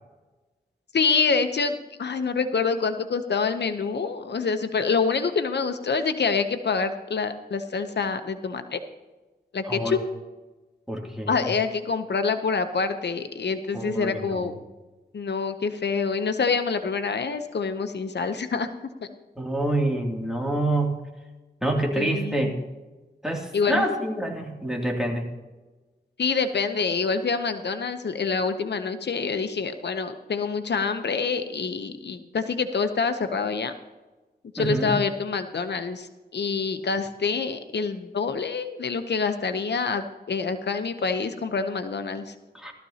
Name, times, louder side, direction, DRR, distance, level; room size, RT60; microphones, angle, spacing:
voice 1, 0.9-8.8 9.5-10.0 11.3-14.6 15.1-18.7 22.0-22.5 23.5-23.9 26.2-33.7 34.5-36.1 36.3-42.3, left 5 dB, 90° left, 8 dB, 0.8 m, -26 dB
voice 2, 10.9-11.5 13.7-14.5 19.4-21.0 21.6-22.5 23.2-25.3 34.6-35.0 42.5-42.7, right 1 dB, 5° right, -1 dB, 2.6 m, -27 dB
17.0 x 13.5 x 2.8 m, 1.2 s
wide cardioid pair, 65°, 17 cm